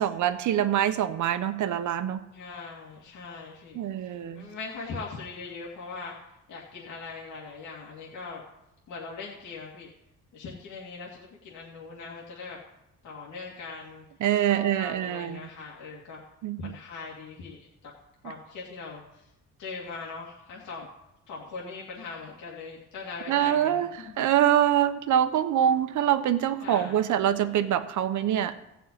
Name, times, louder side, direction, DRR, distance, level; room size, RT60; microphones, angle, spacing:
voice 1, 0.0-2.2 3.7-4.5 14.2-15.5 16.4-16.7 23.3-28.5, right 10 dB, 75° right, 10 dB, 1.1 m, -25 dB
voice 2, 2.3-6.2 6.5-8.4 8.9-9.9 10.3-12.6 13.0-14.1 14.4-16.2 16.6-17.7 18.2-19.3 19.6-20.9 21.3-24.3 26.6-27.0, left 4 dB, 75° left, -4 dB, 2.5 m, -41 dB
15.0 x 5.8 x 8.8 m, 0.88 s
cardioid pair, 90°, 30 cm